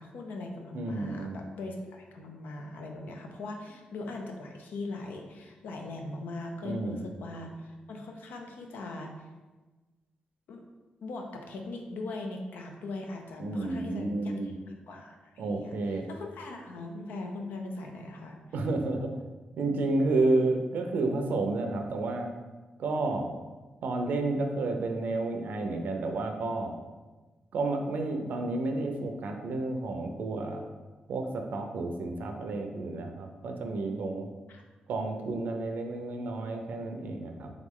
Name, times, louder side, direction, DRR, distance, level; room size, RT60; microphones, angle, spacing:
voice 1, 0.0-9.3 10.5-10.6 11.0-18.4 34.5-34.6, left 2 dB, 90° left, 2 dB, 0.6 m, -40 dB
voice 2, 0.7-1.4 6.6-7.0 13.4-14.5 15.4-16.1 18.5-19.1 19.6-22.3 22.8-23.3 23.8-26.8 27.5-30.6 31.1-34.3 34.9-37.5, right 2 dB, 75° right, 4 dB, 0.5 m, -31 dB
3.6 x 3.1 x 3.6 m, 1.2 s
cardioid pair, 105°, 3 cm